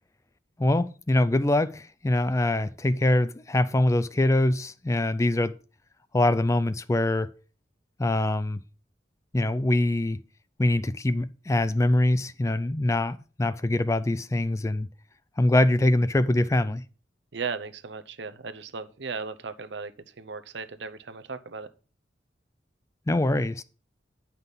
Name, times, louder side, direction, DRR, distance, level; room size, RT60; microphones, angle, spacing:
voice 1, 0.6-5.5 6.1-7.3 8.0-8.6 9.3-10.2 10.6-14.9 15.4-16.8 23.1-23.6, left 1 dB, 15° left, 0.3 m, -24 dB
voice 2, 17.3-19.9 20.2-21.7, right 5 dB, 65° right, 0.7 m, -36 dB
9.8 x 5.8 x 5.2 m
head